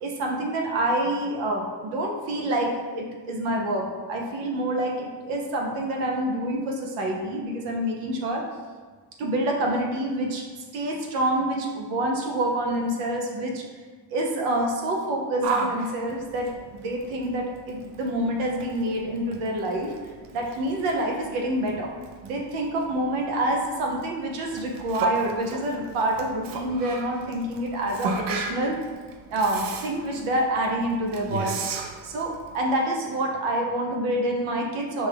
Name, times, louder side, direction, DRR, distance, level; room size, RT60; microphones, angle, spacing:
voice 1, 0.0-8.4 9.2-10.5 10.7-13.6 14.1-19.9 20.3-21.9 22.2-28.8 29.3-31.6 32.0-35.1, right 1 dB, 85° right, 0 dB, 0.9 m, -27 dB
Yell, 15.4-32.6, right 4 dB, 60° right, 0.6 m, -36 dB
6.0 x 2.3 x 3.4 m, 1.5 s
supercardioid pair, 65°, 48 cm